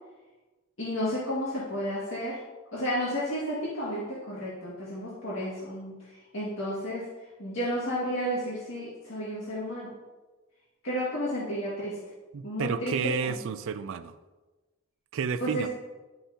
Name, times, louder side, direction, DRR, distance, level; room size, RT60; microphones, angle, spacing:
voice 1, 0.8-2.4 2.7-7.1 7.4-9.9 10.8-12.0 12.4-13.4 15.4-15.7, equal, 65° left, -8 dB, 2.0 m, -32 dB
voice 2, 12.3-14.2 15.1-15.7, right 6 dB, 65° right, 11 dB, 0.4 m, -31 dB
11.0 x 5.7 x 2.8 m, 1.2 s
head